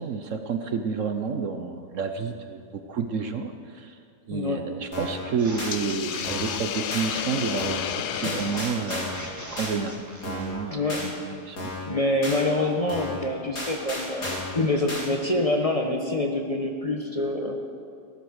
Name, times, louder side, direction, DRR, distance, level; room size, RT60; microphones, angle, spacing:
voice 1, 0.0-4.0 4.3-11.7, right 5 dB, 60° right, 7 dB, 1.0 m, -30 dB
voice 2, 4.3-4.6 8.2-8.4 10.7-11.0 11.9-17.6, left 2 dB, 25° left, 2 dB, 1.0 m, -26 dB
sound 1, 4.9-5.2 5.6-5.7 6.2-6.6 6.9-7.1 7.6-7.9 8.2-9.2 9.6-9.7 10.2-10.6 10.9-11.1 11.6-11.9 12.2-12.4 12.9-13.2 13.5-14.5 14.9-15.0, left 1 dB, 65° left, 4.1 m, -33 dB
sound 2, 5.4-10.6, right 1 dB, 10° right, 1.8 m, -40 dB
Hiss, 5.7-10.0, left 10 dB, 80° left, 1.2 m, -33 dB
15.5 x 13.0 x 6.4 m, 2.4 s
omnidirectional pair, 1.7 m